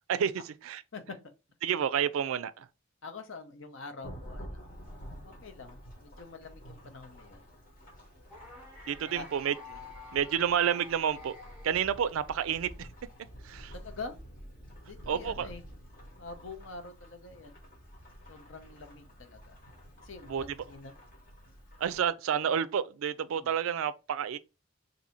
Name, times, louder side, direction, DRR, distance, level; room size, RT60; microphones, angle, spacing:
voice 1, 0.1-0.8 1.6-2.7 8.9-9.5 10.1-11.4 11.6-12.9 13.4-13.7 15.1-15.5 20.3-20.4 21.8-24.4, right 8 dB, 75° right, 0.3 m, -30 dB
voice 2, 3.0-4.7 5.2-7.4 9.1-9.3 13.7-14.2 14.8-15.6 16.2-17.6 18.3-19.6 20.0-20.9 23.3-23.5, left 4 dB, 65° left, 0.6 m, -45 dB
Thunderstorm / Rain, 4.0-22.1, equal, 40° left, 1.0 m, -49 dB
sound 1, 8.3-12.5, left 3 dB, 5° right, 0.8 m, -50 dB
2.6 x 2.6 x 4.3 m
head